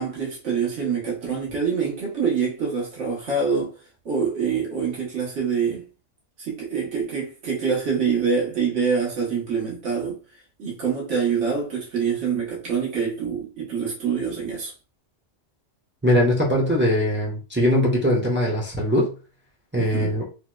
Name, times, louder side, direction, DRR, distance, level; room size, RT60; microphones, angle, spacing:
voice 1, 0.0-3.7 4.0-5.9 6.4-10.2 10.6-14.7 19.7-20.1, right 6 dB, 80° right, 1.4 m, -25 dB
voice 2, 16.0-19.1 19.7-20.2, left 1 dB, 10° right, 0.7 m, -21 dB
3.4 x 2.9 x 2.2 m
omnidirectional pair, 1.2 m